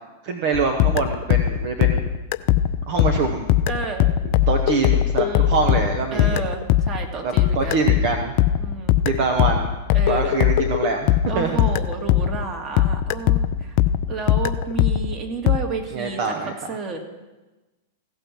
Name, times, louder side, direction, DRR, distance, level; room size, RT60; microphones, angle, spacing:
voice 1, 0.2-2.0 2.9-3.4 4.5-6.4 7.2-8.3 9.0-9.7 10.1-11.1 11.3-11.5 15.9-16.5, right 5 dB, 55° right, 4 dB, 1.0 m, -24 dB
sound 1, 0.5-12.5 12.8-15.6, left 11 dB, 50° left, 0.4 m, -20 dB
voice 2, 3.7-4.1 5.2-5.6 6.1-7.7 8.6-9.0 9.9-10.3 11.3-13.8 14.1-17.0, right 4 dB, 30° right, 2 dB, 2.0 m, -31 dB
15.5 x 5.6 x 6.0 m, 1.1 s
hypercardioid pair, 100°, 0 cm